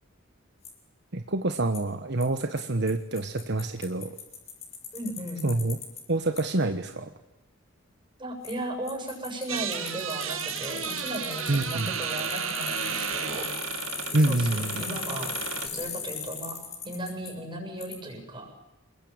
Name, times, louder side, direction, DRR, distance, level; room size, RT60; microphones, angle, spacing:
Bicycle, 0.6-0.7 1.7-1.8 2.2-2.3 2.6-2.7 2.9-3.0 3.2-6.0 6.4-6.5 8.4-8.5 8.9-17.3 17.8-17.9, left 6 dB, 35° left, 6.7 m, -38 dB
voice 1, 1.1-4.1 5.4-5.8 6.1-7.1 11.5-12.0 14.1-14.8, right 2 dB, 55° right, 7 dB, 1.3 m, -27 dB
voice 2, 4.9-5.5 8.2-13.5 14.3-15.3 15.7-18.5, right 1 dB, 25° right, 2 dB, 7.8 m, -36 dB
sound 1, 9.5-15.7, right 7 dB, 75° right, 2.7 m, -33 dB
28.0 x 21.5 x 9.0 m, 0.98 s
head